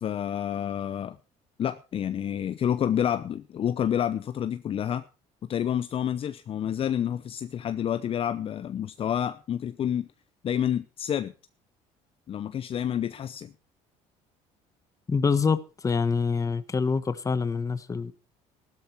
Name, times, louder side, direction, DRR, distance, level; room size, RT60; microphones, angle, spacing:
voice 1, 0.0-1.2 1.6-5.0 5.5-10.1 10.4-11.3 12.3-13.5, left 9 dB, 40° left, 0.7 m, -29 dB
voice 2, 15.1-18.1, left 5 dB, 25° left, 1.3 m, -26 dB
14.0 x 12.5 x 4.6 m
cardioid pair, 110°, 14 cm